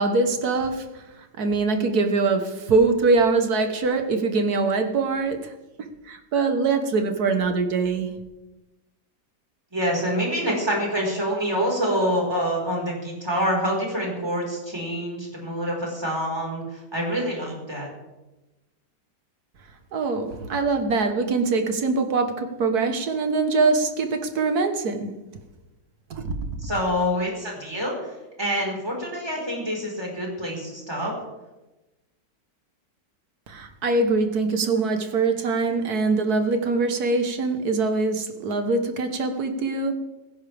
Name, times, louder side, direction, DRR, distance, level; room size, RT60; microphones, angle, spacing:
voice 1, 0.0-5.5 5.8-8.2 19.9-25.1 26.1-26.5 33.5-39.9, right 3 dB, 60° right, 6 dB, 1.7 m, -23 dB
voice 2, 9.7-17.9 26.6-31.1, equal, 15° right, -2 dB, 4.8 m, -26 dB
16.0 x 16.0 x 3.5 m, 1.1 s
omnidirectional pair, 1.9 m